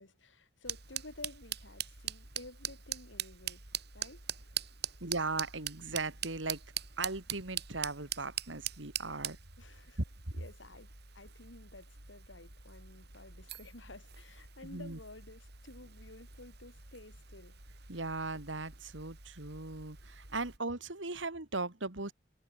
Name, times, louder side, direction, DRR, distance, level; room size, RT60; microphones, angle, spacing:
voice 1, 0.0-3.6 3.9-4.2 9.6-10.0 10.3-17.6, left 2 dB, 90° left, 6.0 m, -53 dB
sound 1, 0.6-20.6, right 10 dB, 60° right, 4.8 m, -43 dB
voice 2, 5.0-6.6 7.0-9.4 14.6-15.0 17.9-22.1, right 3 dB, 90° right, 2.5 m, -38 dB
head